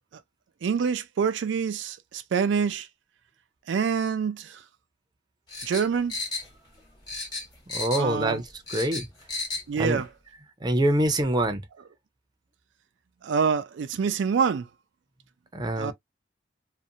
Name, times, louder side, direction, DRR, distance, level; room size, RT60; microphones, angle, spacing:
voice 1, 0.6-2.9 3.7-4.6 5.6-6.1 8.0-8.4 9.7-10.1 13.2-14.7 15.8-15.9, right 6 dB, 90° right, 0.4 m, -26 dB
sound 1, 5.5-6.8 7.1-8.2 8.5-9.7 10.0-10.1, left 3 dB, 25° left, 1.1 m, -33 dB
voice 2, 7.7-9.1 9.8-10.0 10.6-11.6 15.5-15.9, right 1 dB, 25° right, 0.5 m, -25 dB
2.5 x 2.1 x 2.7 m
head